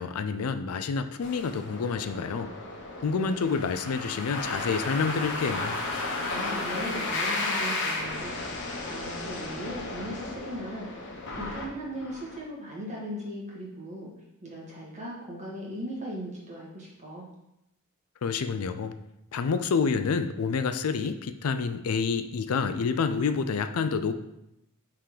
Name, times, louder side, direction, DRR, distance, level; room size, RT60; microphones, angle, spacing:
voice 1, 0.0-2.5 3.0-5.8 18.2-18.9 19.3-24.1, left 5 dB, 80° left, 9 dB, 0.4 m, -28 dB
sound 1, 1.2-12.4, left 2 dB, 55° left, 1.1 m, -34 dB
voice 2, 6.3-8.4 8.8-10.9 11.4-14.1 14.4-17.3, equal, 35° right, -4 dB, 1.8 m, -38 dB
5.6 x 3.8 x 4.9 m, 0.85 s
head